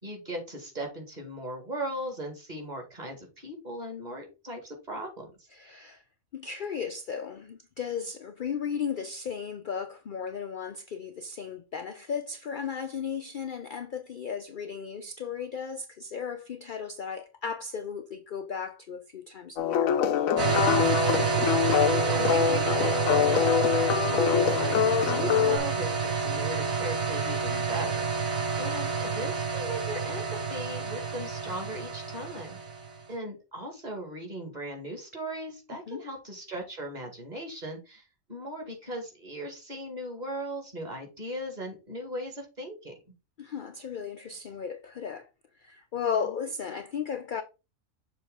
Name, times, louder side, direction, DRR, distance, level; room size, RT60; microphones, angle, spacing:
voice 1, 0.0-5.5 20.0-32.6 33.1-42.9 46.2-46.3, right 1 dB, 30° right, 2.1 m, -38 dB
voice 2, 5.5-6.0 6.3-20.0 35.9-36.0 43.4-45.3 45.6-47.4, left 6 dB, 55° left, 0.6 m, -35 dB
sound 1, 19.6-25.6, left 9 dB, 80° left, 1.1 m, -25 dB
sound 2, 20.4-33.0, right 5 dB, 80° right, 1.7 m, -28 dB
6.9 x 3.3 x 4.9 m
omnidirectional pair, 1.4 m